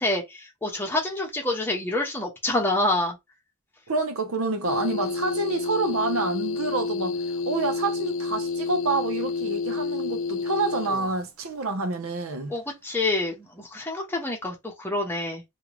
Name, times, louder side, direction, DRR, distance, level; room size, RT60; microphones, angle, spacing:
voice 1, 0.0-3.2 12.5-15.4, left 2 dB, 10° left, 1.0 m, -27 dB
voice 2, 3.9-7.2 7.5-12.5, right 3 dB, 85° right, 0.8 m, -28 dB
sound 1, 4.6-11.2, left 4 dB, 65° left, 0.5 m, -29 dB
3.6 x 2.4 x 3.0 m
head